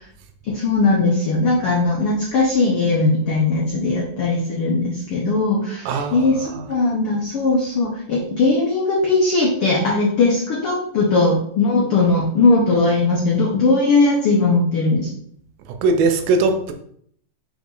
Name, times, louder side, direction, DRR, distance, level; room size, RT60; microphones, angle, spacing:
voice 1, 0.5-15.1, left 3 dB, 85° left, -2 dB, 1.2 m, -19 dB
voice 2, 5.9-6.7 15.8-16.7, right 3 dB, 90° right, 6 dB, 2.6 m, -20 dB
6.2 x 5.0 x 3.9 m, 0.66 s
omnidirectional pair, 4.1 m